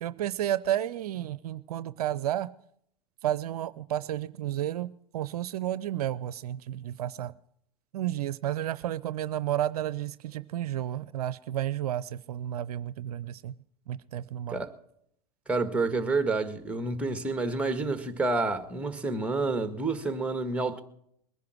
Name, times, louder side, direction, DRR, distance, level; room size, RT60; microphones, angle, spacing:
voice 1, 0.0-2.5 3.2-7.3 7.9-13.5 13.9-14.6, right 12 dB, 70° right, 0.5 m, -32 dB
voice 2, 15.5-20.8, right 3 dB, 5° right, 1.7 m, -29 dB
21.0 x 10.5 x 6.2 m
hypercardioid pair, 95°, 20 cm